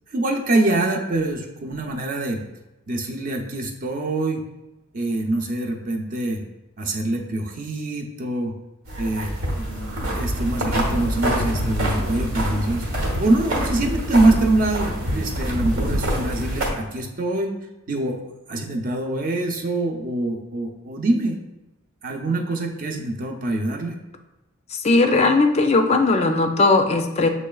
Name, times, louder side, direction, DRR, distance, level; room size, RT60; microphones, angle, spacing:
voice 1, 0.1-2.4 2.9-4.4 4.9-6.4 6.8-8.5 9.0-12.9 13.2-17.5 17.9-18.2 18.5-21.4 22.0-24.0, right 2 dB, 45° right, 2 dB, 0.6 m, -24 dB
sound 1, 8.9-16.7, right 1 dB, 80° right, 1.1 m, -25 dB
voice 2, 24.7-27.3, left 3 dB, 30° left, 5 dB, 0.4 m, -18 dB
7.4 x 3.1 x 2.3 m, 1.0 s
head